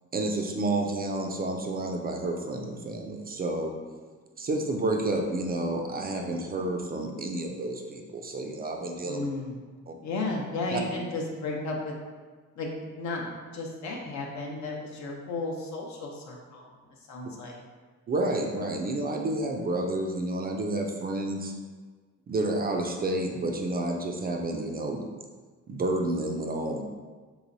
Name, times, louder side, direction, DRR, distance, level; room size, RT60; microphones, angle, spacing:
voice 1, 0.1-3.7 4.4-9.2 9.9-10.0 10.7-10.8 18.1-21.5 22.3-25.0 25.7-26.8, right 2 dB, 30° right, 2 dB, 0.4 m, -30 dB
voice 2, 9.0-9.6 10.0-11.9 12.6-12.7 12.9-16.6 17.1-17.6, left 3 dB, 65° left, -1 dB, 0.7 m, -34 dB
3.2 x 3.0 x 2.6 m, 1.4 s
cardioid pair, 90°, 30 cm